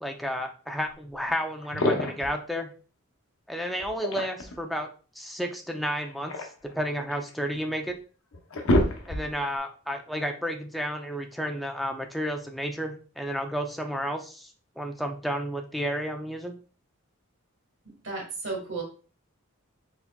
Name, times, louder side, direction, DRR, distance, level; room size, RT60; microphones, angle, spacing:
voice 1, 0.0-2.7 3.5-4.9 5.2-8.0 9.1-14.5 14.8-16.5, equal, ahead, 3 dB, 0.4 m, -32 dB
sound 1, 1.2-1.3 1.6-2.4 3.8-4.6 5.9-7.3 7.9-8.0 8.3-9.5, left 1 dB, 70° left, 0.8 m, -27 dB
voice 2, 18.0-18.8, right 3 dB, 60° right, 0 dB, 1.5 m, -33 dB
4.5 x 4.0 x 2.2 m, 0.38 s
head